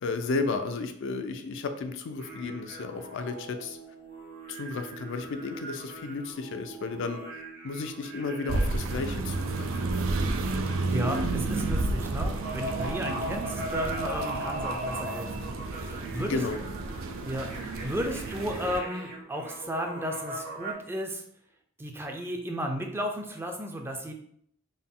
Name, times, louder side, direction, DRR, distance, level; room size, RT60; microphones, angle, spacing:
voice 1, 0.0-3.8 4.5-9.9 16.2-16.6, left 4 dB, 65° left, 8 dB, 0.4 m, -33 dB
sound 1, 2.2-20.7, right 1 dB, 55° right, 1.2 m, -40 dB
sound 2, 8.5-18.8, right 2 dB, 85° right, 0.4 m, -31 dB
voice 2, 10.8-15.5 15.7-16.4 17.2-21.2 21.8-24.1, equal, 10° right, 3 dB, 0.4 m, -34 dB
3.8 x 2.2 x 3.7 m, 0.68 s
head